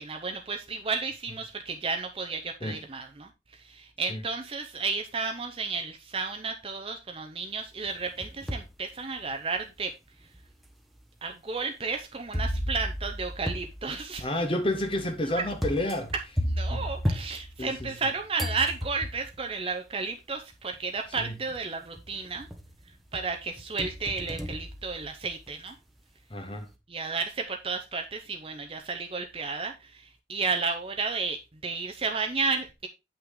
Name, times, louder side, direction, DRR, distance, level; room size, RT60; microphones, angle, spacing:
voice 1, 0.0-9.9 11.2-14.3 16.5-22.5 23.1-25.7 26.9-32.9, right 4 dB, 30° right, 0.7 m, -32 dB
sound 1, 7.9-8.8 9.3-9.4 10.3-10.4 12.3-18.0 18.4-19.4 20.5-20.6 21.2-21.6 22.0-22.7 23.1-25.5, equal, ahead, 1.0 m, -34 dB
voice 2, 14.2-16.1 16.7-16.9 17.6-17.9 21.2-21.3 26.3-26.7, left 1 dB, 30° left, 1.0 m, -30 dB
8.1 x 5.9 x 3.7 m
head